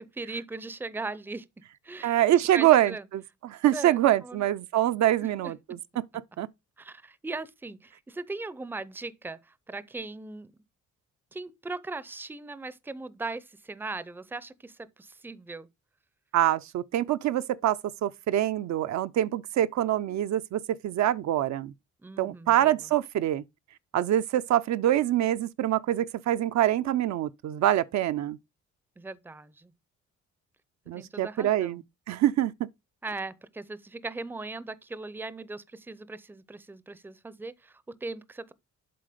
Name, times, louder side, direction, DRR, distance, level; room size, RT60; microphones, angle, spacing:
voice 1, 0.0-1.5 1.8-2.2 2.5-3.0 3.7-4.4 5.2-5.5 6.8-10.5 11.3-15.7 22.0-22.9 29.0-29.7 30.9-31.8 33.0-38.5, right 3 dB, 5° right, 0.5 m, -39 dB
voice 2, 2.0-5.8 6.4-6.5 16.3-21.7 22.2-23.4 23.9-28.4 30.9-31.8 32.1-32.5, right 12 dB, 65° right, 0.5 m, -25 dB
7.7 x 4.0 x 5.0 m
cardioid pair, 90°, 30 cm